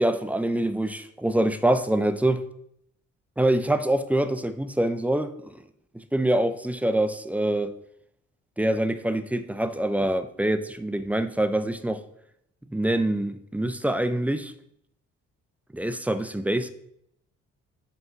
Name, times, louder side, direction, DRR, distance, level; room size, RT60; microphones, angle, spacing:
voice 1, 0.0-2.4 3.4-5.5 5.9-7.7 8.6-12.0 12.7-14.5 15.7-16.7, right 1 dB, 5° right, 0.4 m, -25 dB
5.3 x 3.6 x 5.5 m
cardioid pair, 90°, 30 cm